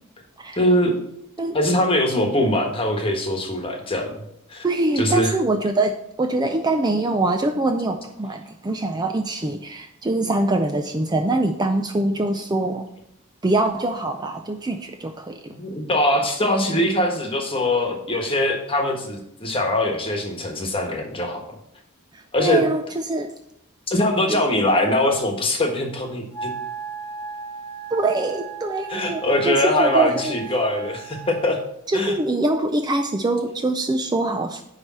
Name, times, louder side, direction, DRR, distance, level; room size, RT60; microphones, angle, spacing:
voice 1, 0.6-0.9 1.5-4.2 4.5-4.6 5.0-5.3 15.5-21.4 22.3-22.6 23.9-26.5 28.9-31.6 31.9-32.1, left 1 dB, 25° left, 3 dB, 1.3 m, -22 dB
voice 2, 4.6-12.9 13.4-15.5 22.1-23.3 24.3-24.5 27.9-30.3 31.9-34.6, right 2 dB, 20° right, 6 dB, 0.4 m, -23 dB
Wind instrument woodwind instrument, 26.3-31.5, right 6 dB, 5° left, 1.8 m, -36 dB
9.6 x 3.3 x 6.1 m, 0.75 s
head